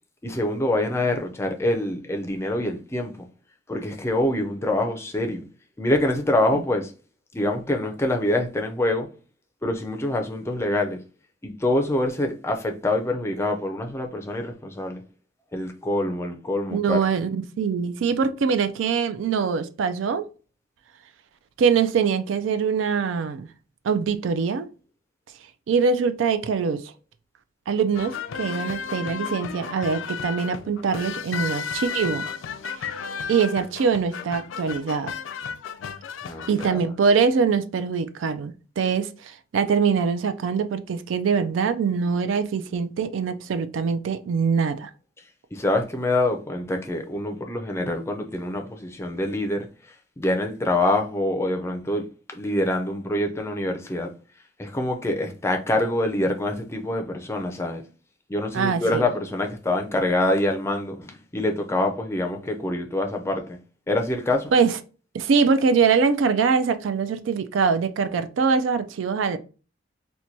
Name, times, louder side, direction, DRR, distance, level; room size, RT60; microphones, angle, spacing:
voice 1, 0.2-3.1 3.7-5.4 5.8-6.9 7.3-9.1 9.6-11.0 11.4-15.0 15.5-17.0 36.2-36.8 45.5-49.7 50.2-54.1 54.6-57.8 58.3-63.6 63.9-64.5, left 1 dB, 15° left, 0.4 m, -25 dB
voice 2, 16.7-20.3 21.6-23.5 23.8-24.7 25.7-26.8 27.7-32.3 33.3-35.1 36.5-44.9 58.5-59.0 64.5-64.7 65.1-69.4, right 5 dB, 75° right, 0.4 m, -23 dB
sound 1, 27.9-36.7, left 6 dB, 75° left, 0.4 m, -33 dB
4.3 x 2.2 x 2.6 m
head